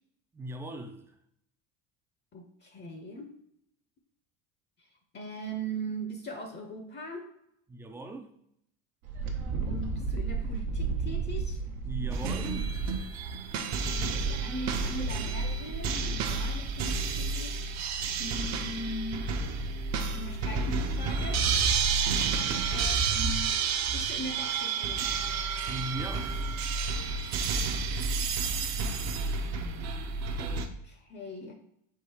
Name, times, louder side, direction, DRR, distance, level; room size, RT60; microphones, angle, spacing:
voice 1, 0.3-1.1 7.7-8.3 11.8-12.7 22.1-22.7 25.6-26.3, right 1 dB, 5° right, 0.3 m, -39 dB
voice 2, 2.3-3.3 5.1-7.3 9.6-11.6 14.0-17.8 18.2-19.3 20.1-21.4 22.7-23.5 23.9-25.1 28.7-31.5, right 1 dB, 30° left, 0.6 m, -40 dB
Wind, 9.0-17.2, right 5 dB, 85° right, 1.0 m, -35 dB
sound 1, 12.1-30.7, right 4 dB, 45° right, 0.6 m, -30 dB
4.6 x 2.3 x 4.8 m
supercardioid pair, 100°, 38 cm